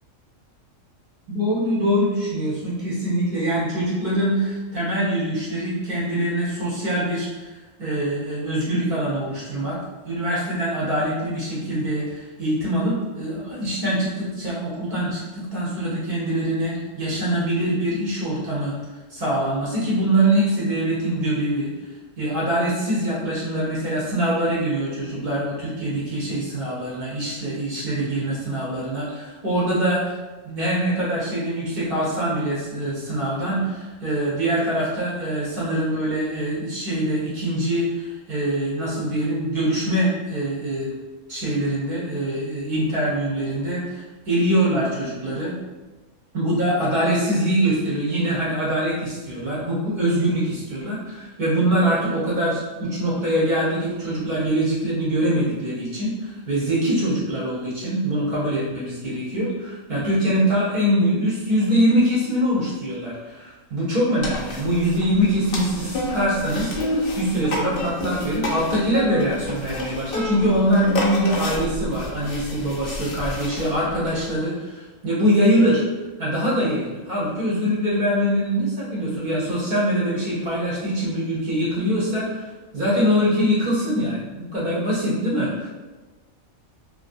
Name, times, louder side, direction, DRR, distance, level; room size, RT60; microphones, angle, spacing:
voice 1, 1.3-7.5 7.8-9.8 10.0-18.7 19.1-21.7 22.2-30.2 30.4-40.9 41.3-45.5 46.3-75.8 76.2-85.7, equal, 45° right, -7 dB, 0.7 m, -23 dB
sound 1, 64.2-74.3, left 1 dB, 60° left, 0.6 m, -30 dB
2.5 x 2.3 x 2.5 m, 1.3 s
omnidirectional pair, 1.4 m